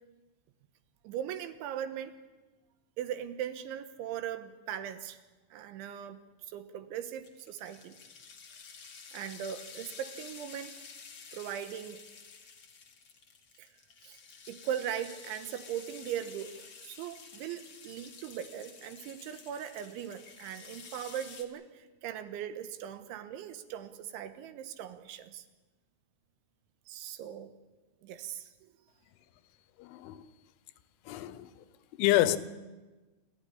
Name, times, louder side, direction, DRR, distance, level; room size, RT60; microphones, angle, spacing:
voice 1, 1.0-2.2 3.0-5.2 5.5-6.2 6.5-8.0 9.1-10.7 11.3-12.0 13.6-13.7 14.0-14.2 14.5-25.5 26.9-27.5 28.0-28.7, right 10 dB, 75° right, 3.5 m, -39 dB
sound 1, 7.0-21.4, left 5 dB, 60° left, 1.3 m, -51 dB
voice 2, 29.8-30.3 31.1-31.5 31.9-32.4, left 15 dB, 80° left, 3.3 m, -28 dB
28.5 x 13.5 x 10.0 m
omnidirectional pair, 5.7 m